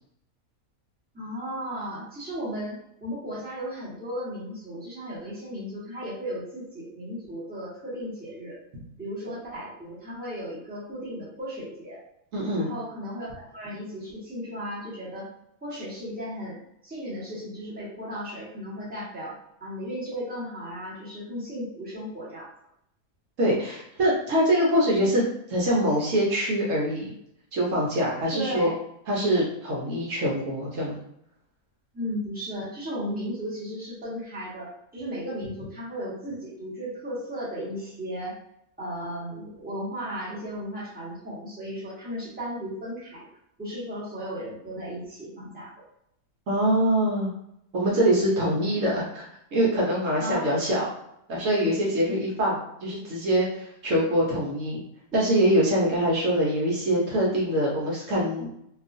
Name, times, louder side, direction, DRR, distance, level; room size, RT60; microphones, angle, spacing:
voice 1, 1.1-8.6 9.0-12.0 12.6-15.3 15.6-19.3 19.6-22.5 28.3-28.7 31.9-38.4 38.8-43.2 43.6-45.7 50.2-50.4 52.1-52.2, equal, 5° right, -8 dB, 0.9 m, -35 dB
voice 2, 12.3-12.7 23.4-25.2 25.5-27.1 27.5-28.7 29.1-31.0 46.5-47.3 47.7-50.9 51.3-54.8 55.1-58.5, equal, 65° right, -4 dB, 1.0 m, -24 dB
2.8 x 2.4 x 2.5 m, 0.76 s
omnidirectional pair, 1.5 m